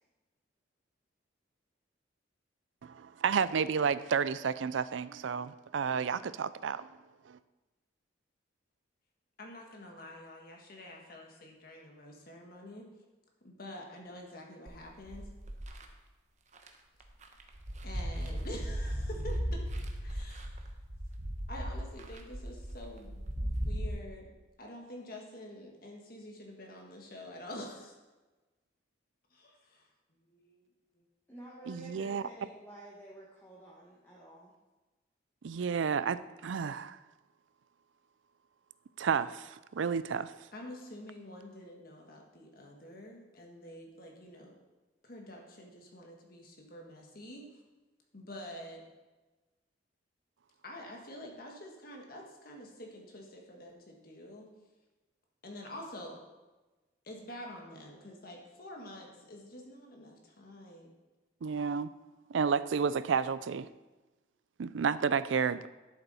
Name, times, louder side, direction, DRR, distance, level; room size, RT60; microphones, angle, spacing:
voice 1, 2.8-7.0 7.3-7.4 31.7-32.2 35.4-37.0 39.0-40.3 61.4-61.9 62.3-63.7 64.6-65.7, right 6 dB, 75° right, 16 dB, 0.4 m, -31 dB
voice 2, 9.4-12.8 13.4-15.3 17.8-19.6 20.0-20.7 21.5-24.3 24.6-27.9 29.3-29.9 30.2-31.1 40.5-44.6 45.0-47.5 48.1-48.8 50.6-54.5 55.4-56.2 57.0-61.0, left 1 dB, 50° left, 0 dB, 1.6 m, -47 dB
sound 1, 14.7-15.8 16.5-16.7 17.0-23.9, equal, 40° right, 1.0 m, -37 dB
voice 3, 31.3-34.5, right 2 dB, 10° left, -5 dB, 1.4 m, -51 dB
11.5 x 7.0 x 4.2 m, 1.2 s
head